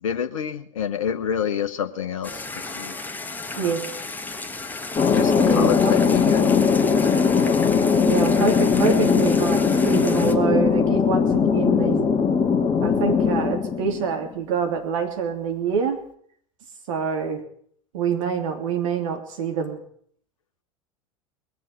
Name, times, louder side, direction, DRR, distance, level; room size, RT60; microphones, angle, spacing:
voice 1, 0.0-2.9 3.5-3.8 5.1-6.4, left 8 dB, 75° left, 10 dB, 0.9 m, -28 dB
sound 1, 2.2-10.3, left 3 dB, 10° left, 1.6 m, -34 dB
Thunder, 5.0-14.3, left 6 dB, 30° left, 1.8 m, -20 dB
voice 2, 5.4-5.9 8.0-12.1 12.8-16.0 16.9-17.4 17.9-19.8, right 6 dB, 65° right, 4 dB, 3.0 m, -26 dB
20.5 x 7.5 x 9.2 m, 0.63 s
figure-of-eight pair, 80°, 17 cm